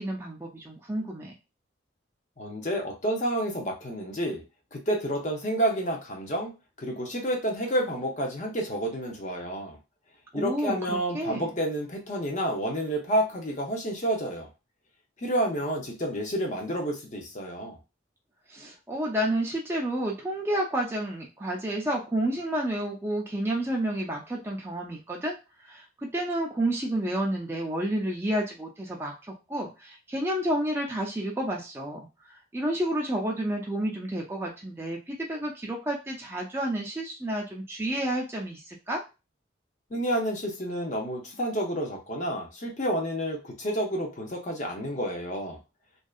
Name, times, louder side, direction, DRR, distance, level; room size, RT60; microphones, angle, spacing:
voice 1, 0.0-1.3 10.3-11.5 18.5-25.4 25.6-29.1 29.5-32.1 32.5-39.0, right 1 dB, 15° right, -2 dB, 0.4 m, -30 dB
voice 2, 2.4-4.4 4.7-6.5 6.8-9.8 10.3-14.5 15.2-17.8 39.9-45.6, right 1 dB, 40° left, 1 dB, 0.7 m, -29 dB
2.6 x 2.2 x 2.4 m, 0.28 s
head